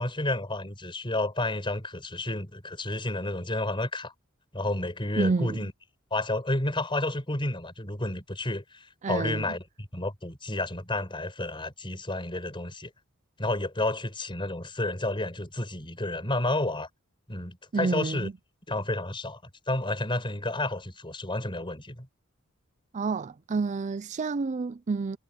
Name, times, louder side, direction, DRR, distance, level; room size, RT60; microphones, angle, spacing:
voice 1, 0.0-4.1 4.5-5.7 6.1-12.9 13.4-16.9 17.3-18.3 18.7-19.4 19.7-22.1, left 2 dB, 25° left, 5.0 m, -31 dB
voice 2, 5.2-5.6 9.0-9.5 17.7-18.3 22.9-25.2, right 4 dB, 35° right, 0.4 m, -29 dB
head